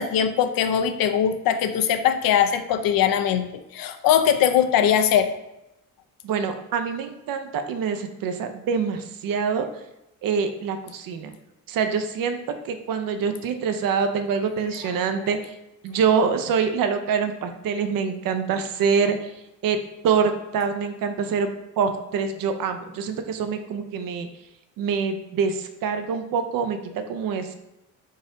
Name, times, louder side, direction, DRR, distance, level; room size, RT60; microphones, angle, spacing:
voice 1, 0.0-3.5 3.7-5.3, left 9 dB, 75° left, 8 dB, 0.5 m, -21 dB
voice 2, 6.2-9.6 10.2-11.4 11.7-12.4 12.6-15.5 15.8-19.3 19.6-24.3 24.8-27.6, right 6 dB, 70° right, 8 dB, 0.6 m, -25 dB
4.0 x 2.5 x 3.7 m, 0.91 s
cardioid pair, 85°, 35 cm